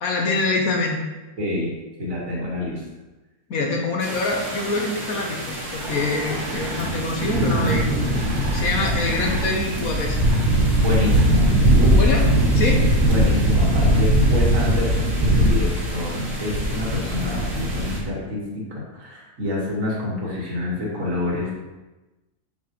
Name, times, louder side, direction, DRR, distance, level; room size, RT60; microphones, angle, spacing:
voice 1, 0.0-1.0 3.5-8.0 8.5-10.2 11.9-12.2 12.5-12.8, left 3 dB, 65° left, 1 dB, 1.3 m, -25 dB
voice 2, 1.4-1.7 2.0-2.8 10.8-11.5 11.8-12.1 13.1-21.5, left 1 dB, 55° right, -5 dB, 2.0 m, -27 dB
sound 1, 4.0-18.0, right 1 dB, 40° right, 1.6 m, -29 dB
sound 2, 5.8-5.9 6.6-6.7 7.0-18.0, equal, 5° right, 1.7 m, -20 dB
sound 3, 5.8-11.5, equal, 75° right, 1.7 m, -36 dB
6.1 x 5.9 x 3.0 m, 1.1 s
omnidirectional pair, 1.7 m